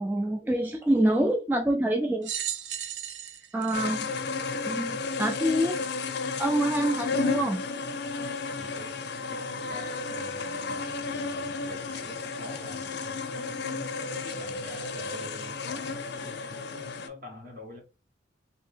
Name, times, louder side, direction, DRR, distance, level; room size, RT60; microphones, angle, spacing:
voice 1, 0.0-2.3 3.5-4.1 4.7-5.8 6.4-7.7, right 1 dB, 10° right, 0.3 m, -26 dB
sound 1, 2.2-4.9 5.6-5.7 6.8-6.9, right 10 dB, 80° right, 0.5 m, -36 dB
sound 2, 3.7-17.1, left 4 dB, 65° left, 0.5 m, -33 dB
voice 2, 8.6-9.0 9.3-17.8, left 2 dB, 50° right, 1.4 m, -45 dB
2.8 x 2.8 x 3.3 m
head